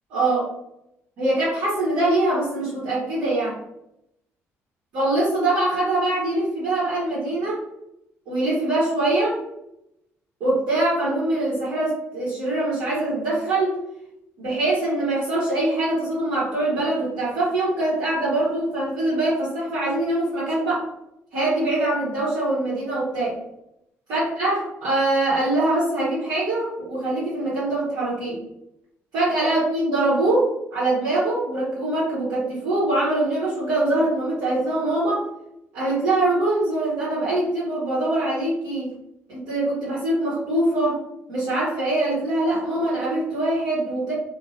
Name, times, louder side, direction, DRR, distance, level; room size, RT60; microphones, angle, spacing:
voice 1, 0.1-0.5 1.2-3.6 4.9-7.6 8.3-9.4 10.4-13.8 14.4-20.8 21.3-23.4 24.1-28.4 29.1-35.2 35.7-38.9 39.3-41.0 41.3-44.1, right 2 dB, 65° right, -10 dB, 1.2 m, -23 dB
2.8 x 2.5 x 2.4 m, 0.81 s
hypercardioid pair, 50°, 7 cm